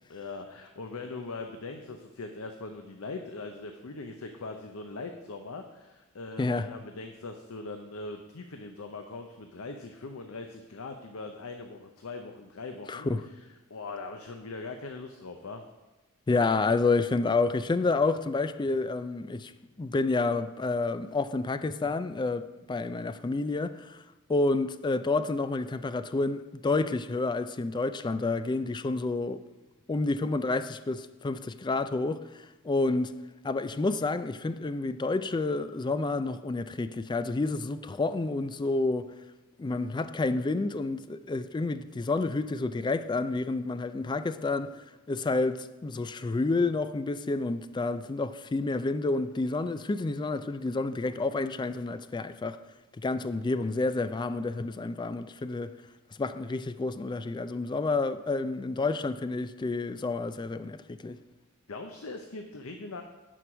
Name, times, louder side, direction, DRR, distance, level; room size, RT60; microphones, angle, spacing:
voice 1, 0.1-13.1 13.7-15.6 61.7-63.0, left 3 dB, 75° left, 0.7 m, -41 dB
voice 2, 12.9-13.2 16.3-19.5 19.8-24.0 24.3-29.4 29.9-33.1 33.4-39.1 39.6-44.8 45.1-52.6 53.0-55.7 56.2-61.2, left 3 dB, 20° left, 0.3 m, -29 dB
10.0 x 4.6 x 6.0 m
head